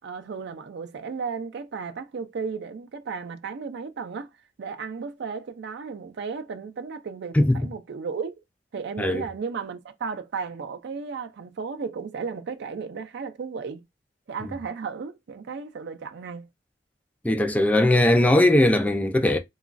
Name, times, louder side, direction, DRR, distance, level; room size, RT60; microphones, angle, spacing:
voice 1, 0.0-4.3 4.6-8.3 8.7-13.8 14.3-16.5, right 5 dB, 60° right, 0.4 m, -34 dB
voice 2, 17.2-19.4, left 1 dB, 10° left, 0.3 m, -19 dB
2.9 x 2.3 x 2.4 m
head